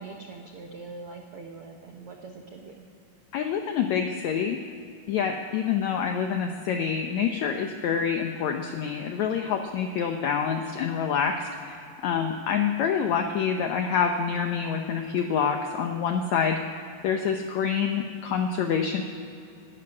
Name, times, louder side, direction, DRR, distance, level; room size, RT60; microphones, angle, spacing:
voice 1, 0.0-2.8, right 3 dB, 85° right, 2 dB, 1.2 m, -42 dB
voice 2, 3.3-4.6 5.1-19.0, left 7 dB, 90° left, 5 dB, 1.6 m, -27 dB
12.5 x 12.0 x 9.7 m, 2.7 s
omnidirectional pair, 4.3 m